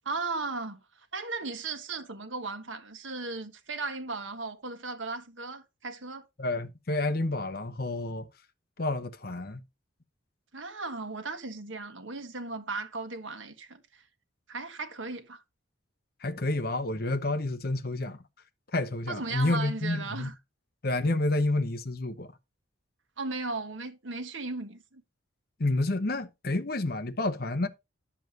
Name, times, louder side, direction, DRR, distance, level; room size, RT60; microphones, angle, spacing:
voice 1, 0.0-6.2 10.5-14.0 14.5-15.4 19.1-20.3 23.2-25.0, right 3 dB, 75° right, 1.4 m, -36 dB
voice 2, 6.4-8.3 8.8-9.6 16.2-18.2 18.7-20.3 20.8-22.3 25.6-27.7, left 2 dB, 50° left, 0.8 m, -29 dB
11.0 x 7.2 x 2.8 m
head